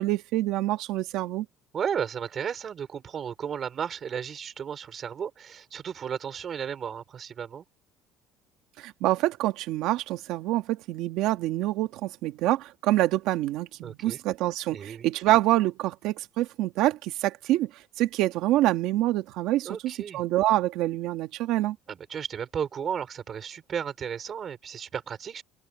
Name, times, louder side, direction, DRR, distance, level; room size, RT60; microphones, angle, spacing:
voice 1, 0.0-1.5 8.8-17.7 18.0-21.8, right 15 dB, 70° right, 1.7 m, -26 dB
voice 2, 1.7-7.6 13.8-14.2 14.7-15.1 19.6-20.2 21.9-25.4, right 7 dB, 35° right, 4.5 m, -34 dB
open air
cardioid pair, 155°, 0 cm